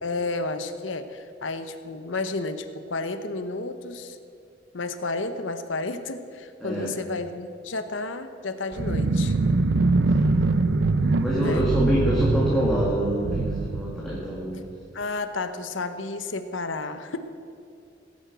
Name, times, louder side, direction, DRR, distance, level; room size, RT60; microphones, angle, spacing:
voice 1, 0.0-4.2 4.7-9.4 11.3-11.7 14.9-17.2, left 3 dB, 90° left, 9 dB, 1.0 m, -31 dB
voice 2, 6.6-7.0 10.1-10.6 11.2-14.6, equal, ahead, -6 dB, 2.3 m, -26 dB
sound 1, 8.7-14.7, right 3 dB, 65° right, 0.6 m, -23 dB
18.5 x 9.8 x 6.2 m, 2.6 s
head